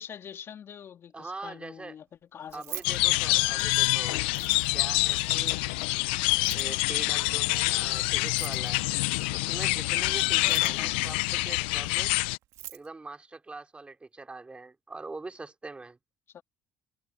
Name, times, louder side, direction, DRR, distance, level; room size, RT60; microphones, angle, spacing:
voice 1, 0.0-2.1 2.3-2.8 10.4-10.9 16.3-16.4, left 8 dB, 50° left, 3.4 m, -44 dB
voice 2, 1.1-2.0 2.5-4.2 4.7-5.6 6.5-8.9 9.3-12.1 12.7-16.0, right 3 dB, 20° right, 3.4 m, -43 dB
Keys jangling, 2.4-3.8 4.2-4.9 6.3-6.8 8.2-8.9 10.3-10.9 12.1-12.2 12.4-12.9, right 15 dB, 65° right, 2.2 m, -43 dB
sound 1, 2.8-12.4, left 23 dB, 80° left, 0.8 m, -26 dB
hypercardioid pair, 65°, 6 cm